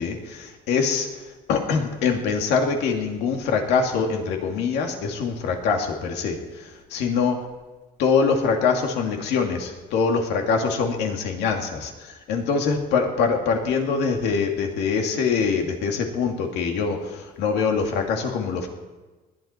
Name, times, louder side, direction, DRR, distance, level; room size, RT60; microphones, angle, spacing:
voice 1, 0.0-7.4 8.0-18.7, left 5 dB, 85° left, 3 dB, 2.4 m, -24 dB
20.5 x 11.5 x 4.4 m, 1.2 s
cardioid pair, 110°, 17 cm